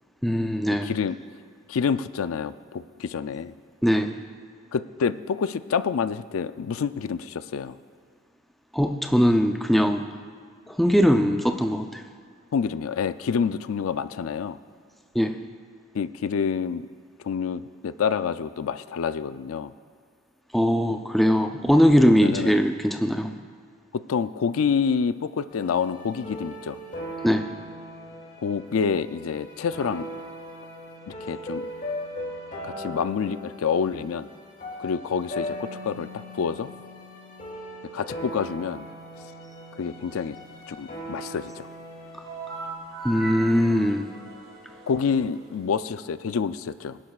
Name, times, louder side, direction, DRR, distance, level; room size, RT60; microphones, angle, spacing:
voice 1, 0.2-0.9 3.8-4.1 8.7-10.1 10.8-12.0 15.1-15.3 20.5-23.3 27.2-27.5 43.0-44.1, equal, ahead, 5 dB, 0.5 m, -21 dB
voice 2, 0.8-1.2 1.7-3.5 4.7-7.8 12.5-14.6 15.9-16.9 17.2-19.7 22.2-22.5 23.9-26.8 28.4-30.1 31.2-31.7 32.6-34.3 34.8-36.7 37.9-38.9 39.7-40.4 40.7-41.7 44.9-47.0, left 6 dB, 75° left, 13 dB, 0.4 m, -27 dB
sound 1, 25.5-42.7, equal, 40° left, 2.5 m, -39 dB
sound 2, 42.2-45.8, right 3 dB, 85° right, 2.8 m, -39 dB
22.5 x 11.0 x 2.4 m, 2.1 s
head